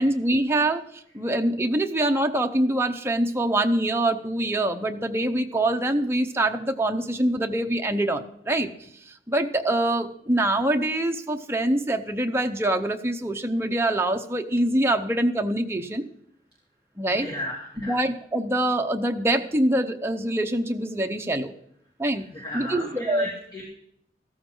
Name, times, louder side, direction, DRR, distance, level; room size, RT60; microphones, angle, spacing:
voice 1, 0.0-8.7 9.1-16.1 17.0-17.3 17.8-21.5 22.0-23.3, right 1 dB, 15° right, 4 dB, 0.8 m, -24 dB
voice 2, 17.1-18.0 22.3-23.6, left 1 dB, 25° left, -5 dB, 2.5 m, -35 dB
15.0 x 13.0 x 3.9 m, 0.70 s
head